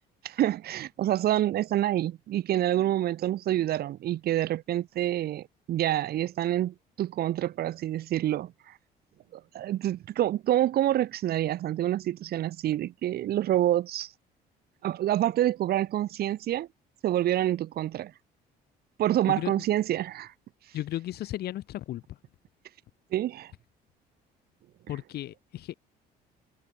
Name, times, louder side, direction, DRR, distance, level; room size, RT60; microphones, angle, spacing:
voice 1, 0.2-8.8 9.3-14.1 14.8-16.7 17.0-18.1 19.0-20.3 23.1-23.5, right 13 dB, 65° right, 3.8 m, -27 dB
voice 2, 20.7-22.2 24.9-25.8, left 14 dB, 70° left, 7.5 m, -35 dB
cardioid pair, 110°, 17 cm